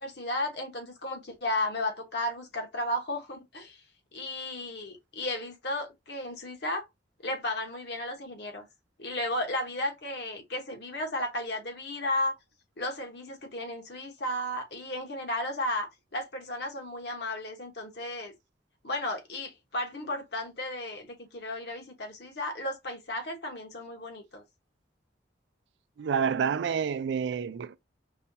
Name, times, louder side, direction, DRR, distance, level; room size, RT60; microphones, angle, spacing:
voice 1, 0.0-3.8 4.1-6.9 7.2-8.7 9.0-12.3 12.8-18.3 18.8-24.4, left 1 dB, 60° left, 1.0 m, -34 dB
voice 2, 26.0-27.8, right 6 dB, 70° right, 0.3 m, -28 dB
5.4 x 2.3 x 2.7 m
head